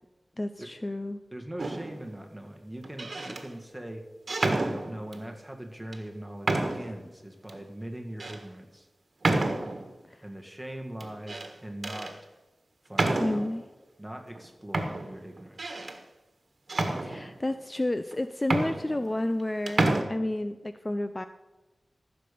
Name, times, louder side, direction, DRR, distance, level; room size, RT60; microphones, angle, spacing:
voice 1, 0.4-1.2 10.1-10.2 13.2-13.6 17.0-21.2, left 1 dB, 25° left, 10 dB, 0.5 m, -31 dB
voice 2, 1.3-4.1 4.6-8.9 10.2-12.2 12.9-13.4 14.0-15.8, right 1 dB, 10° right, 3 dB, 1.8 m, -41 dB
Julian's Door - open and close without latch, 1.6-2.0 2.8-3.4 4.3-5.2 5.9-6.0 6.4-7.0 7.5-7.6 8.2-8.4 9.2-9.9 11.0-11.5 11.8-12.1 12.9-13.6 14.3-14.4 14.7-16.0 16.7-17.5 18.1-18.2 18.4-19.4 19.7-20.0, right 2 dB, 60° right, 1.5 m, -29 dB
14.5 x 6.7 x 5.4 m, 1.1 s
wide cardioid pair, 70°, 0 cm